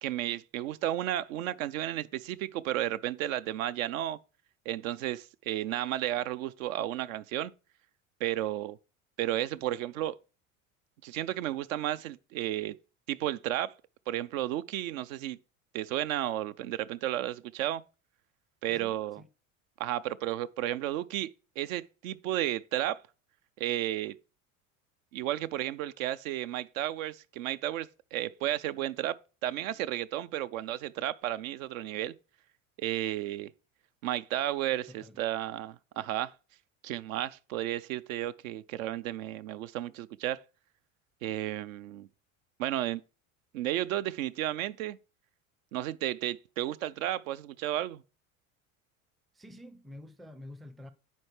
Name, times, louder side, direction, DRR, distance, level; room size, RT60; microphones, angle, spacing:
voice 1, 0.0-4.2 4.7-7.5 8.2-8.8 9.2-10.1 11.0-12.8 13.1-13.7 14.1-15.4 15.7-17.8 18.6-19.2 19.8-21.3 21.6-23.0 23.6-24.2 25.1-29.2 29.4-32.1 32.8-33.5 34.0-36.3 36.8-40.4 41.2-42.1 42.6-43.0 43.5-45.0 45.7-48.0, right 13 dB, 70° right, 0.5 m, -33 dB
voice 2, 18.7-19.3 34.9-35.2 49.3-50.9, left 1 dB, ahead, 0.4 m, -48 dB
9.4 x 4.5 x 3.2 m
hypercardioid pair, 75°, 42 cm